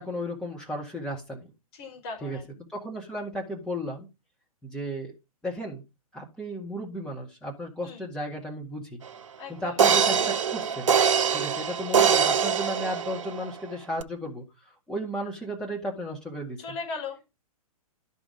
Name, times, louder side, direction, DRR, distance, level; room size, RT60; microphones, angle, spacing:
voice 1, 0.0-1.5 2.2-2.4 2.7-4.1 4.6-5.1 5.4-5.8 6.1-9.0 9.5-10.9 11.3-16.6, equal, 5° left, -3 dB, 1.9 m, -34 dB
voice 2, 1.7-2.4 7.8-8.0 9.4-9.8 16.6-17.3, left 4 dB, 40° left, 1 dB, 4.7 m, -38 dB
sound 1, 9.1-9.2 9.8-13.5 14.0-14.1, right 7 dB, 55° right, 0.9 m, -23 dB
12.0 x 5.4 x 5.2 m, 0.26 s
figure-of-eight pair, 115°, 19 cm